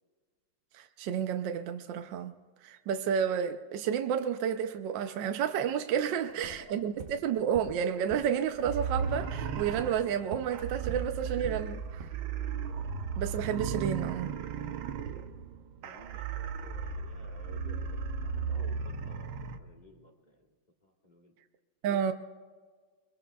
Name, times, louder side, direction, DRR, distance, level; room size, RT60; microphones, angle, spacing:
voice 1, 0.7-2.3 2.6-12.1 13.2-14.3 21.8-22.1, right 8 dB, 75° right, 1.3 m, -31 dB
voice 2, 5.9-7.0 15.8-20.6 20.8-21.3, right 1 dB, 25° left, 1.5 m, -54 dB
sound 1, 6.3-6.7 7.0-7.2 7.5-7.8 8.1-8.4 8.7-8.9 9.2-9.4 9.8-10.6 10.9-11.1 11.4-11.7 12.0-12.1, right 4 dB, 55° right, 0.6 m, -44 dB
sound 2, 8.6-19.6, right 6 dB, 90° right, 1.6 m, -35 dB
Bowed string instrument, 12.9-15.3, left 6 dB, 80° left, 1.5 m, -51 dB
23.5 x 22.5 x 2.3 m
omnidirectional pair, 2.1 m